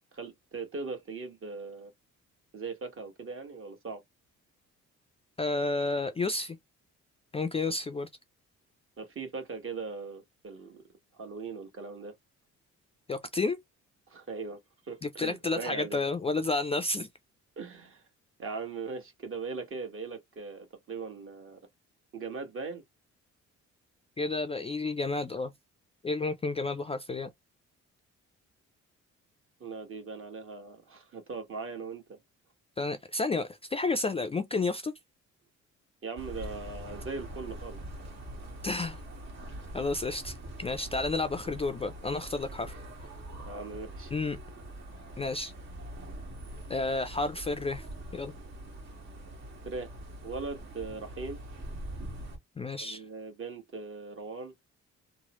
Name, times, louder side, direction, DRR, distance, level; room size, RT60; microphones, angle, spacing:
voice 1, 0.1-1.9 2.5-4.0 9.0-10.8 11.2-12.1 14.1-14.6 14.8-16.0 17.6-18.0 18.4-21.6 22.1-22.8 29.6-32.2 36.0-37.8 43.5-44.1 49.6-49.9 50.2-51.4 52.8-54.5, right 4 dB, 45° right, 1.3 m, -39 dB
voice 2, 5.4-6.6 7.3-8.1 13.1-13.6 15.0-17.1 24.2-25.5 26.0-27.3 32.8-34.9 38.6-39.0 39.7-42.8 44.1-44.4 45.2-45.5 46.7-47.9 48.1-48.3 52.6-53.0, left 3 dB, 20° left, 0.3 m, -31 dB
sound 1, 36.2-52.4, right 1 dB, 60° right, 1.5 m, -43 dB
2.9 x 2.1 x 2.9 m
cardioid pair, 90°, 30 cm